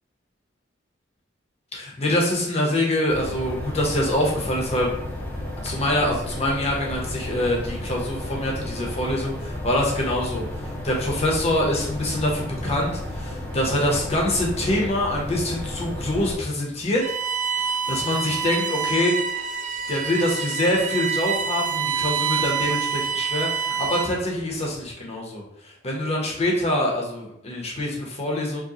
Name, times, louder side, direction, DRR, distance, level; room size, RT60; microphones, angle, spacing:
voice 1, 1.7-4.9 5.6-17.0 17.6-19.1 19.9-28.6, left 1 dB, 35° left, -2 dB, 0.9 m, -25 dB
sound 1, 3.1-16.4, left 1 dB, 10° left, 0.7 m, -33 dB
Bowed string instrument, 17.0-24.3, right 6 dB, 40° right, 0.3 m, -27 dB
4.6 x 2.3 x 3.0 m, 0.79 s
head